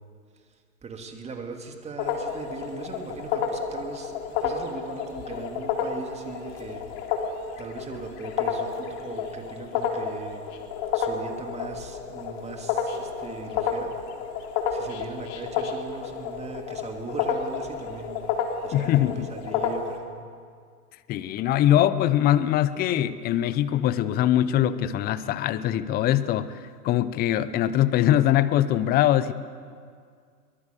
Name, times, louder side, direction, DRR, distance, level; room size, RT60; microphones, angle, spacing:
voice 1, 0.3-6.8 7.6-10.4 10.9-13.9 14.7-20.1, right 4 dB, 15° right, 4 dB, 2.6 m, -39 dB
sound 1, 2.0-20.0, left 7 dB, 40° left, 3.2 m, -30 dB
voice 2, 18.7-19.2 21.1-29.3, left 12 dB, 20° left, 15 dB, 0.7 m, -22 dB
23.0 x 22.0 x 6.9 m, 2.1 s
hypercardioid pair, 120°, 46 cm